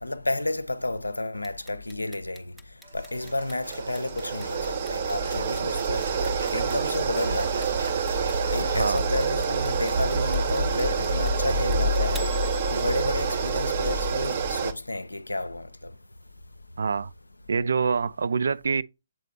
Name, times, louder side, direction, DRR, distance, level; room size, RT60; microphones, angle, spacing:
voice 1, 0.0-2.5 2.9-6.1 6.5-7.7 8.5-12.3 12.7-15.9, left 2 dB, 85° left, 0.4 m, -31 dB
Clock, 1.4-13.4, left 1 dB, ahead, 0.6 m, -47 dB
sound 1, 2.8-14.7, right 2 dB, 85° right, 1.9 m, -43 dB
sound 2, 3.1-14.7, right 4 dB, 45° right, 0.7 m, -27 dB
voice 2, 16.8-17.1 17.5-18.8, right 5 dB, 65° right, 0.3 m, -25 dB
7.6 x 4.1 x 3.0 m
figure-of-eight pair, 130°, 0 cm